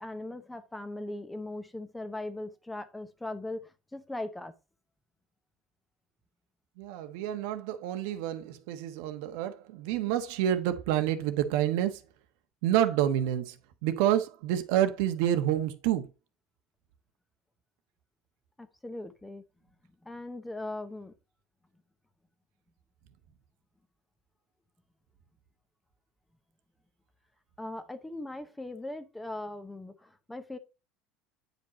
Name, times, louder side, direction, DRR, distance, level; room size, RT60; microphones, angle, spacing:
voice 1, 0.0-4.5 18.6-19.4 20.0-21.1 27.6-30.6, left 2 dB, 5° left, 0.8 m, -39 dB
voice 2, 6.8-12.0 12.6-13.5 13.8-16.0, right 11 dB, 80° right, 1.2 m, -28 dB
9.1 x 5.3 x 4.1 m
cardioid pair, 150°, 0 cm